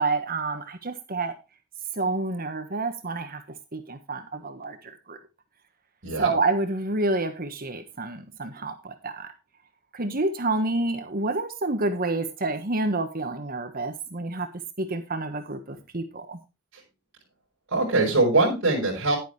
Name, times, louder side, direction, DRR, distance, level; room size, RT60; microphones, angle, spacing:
voice 1, 0.0-1.4 1.9-5.2 6.2-9.3 9.9-14.5 14.8-16.4, right 2 dB, 45° right, 8 dB, 1.4 m, -28 dB
voice 2, 17.7-19.2, right 2 dB, 60° right, -2 dB, 5.5 m, -22 dB
11.0 x 10.0 x 3.2 m, 0.27 s
head